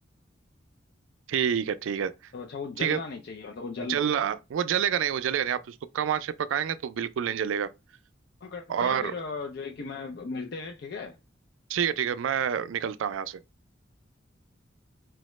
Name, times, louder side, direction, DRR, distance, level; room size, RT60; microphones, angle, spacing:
voice 1, 1.3-2.1 2.8-3.0 3.9-7.7 8.7-9.1 11.7-13.4, right 8 dB, 80° right, 0.3 m, -28 dB
voice 2, 2.3-4.0 8.4-11.2, left 4 dB, 55° left, 0.4 m, -37 dB
4.6 x 2.1 x 3.0 m
head